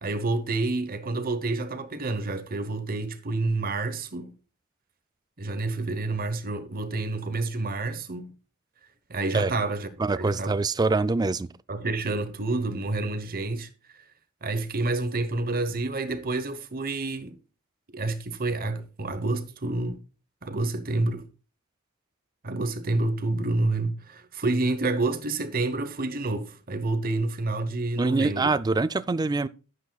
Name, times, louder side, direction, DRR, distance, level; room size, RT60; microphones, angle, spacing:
voice 1, 0.0-4.3 5.4-8.3 9.1-10.5 11.7-13.7 14.4-17.4 17.9-20.0 20.4-21.3 22.4-28.5, right 2 dB, 40° right, 1.0 m, -28 dB
voice 2, 10.0-11.5 28.0-29.5, right 3 dB, 20° right, 0.3 m, -24 dB
10.5 x 9.7 x 2.3 m
head